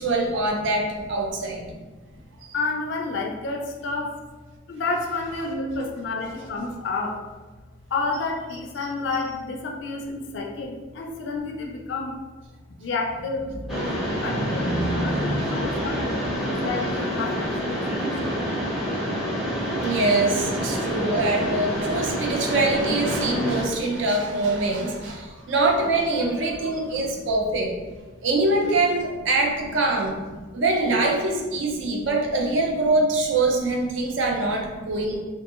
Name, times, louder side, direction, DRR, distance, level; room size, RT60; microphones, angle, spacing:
voice 1, 0.0-1.6 2.4-2.5 13.9-15.5 19.4-27.7 28.2-30.1 30.5-35.2, right 2 dB, 65° right, 1 dB, 0.5 m, -24 dB
voice 2, 2.5-4.2 4.7-7.2 7.9-12.2 12.8-18.2 19.6-19.7 20.7-22.5 23.1-25.5 26.6-27.3 27.6-27.7 31.8-32.0 34.0-34.2 34.8-35.2, left 3 dB, 60° left, 1 dB, 0.3 m, -32 dB
Mechanisms, 13.7-23.6, equal, ahead, 0.5 m, -27 dB
2.7 x 2.7 x 2.4 m, 1.3 s
head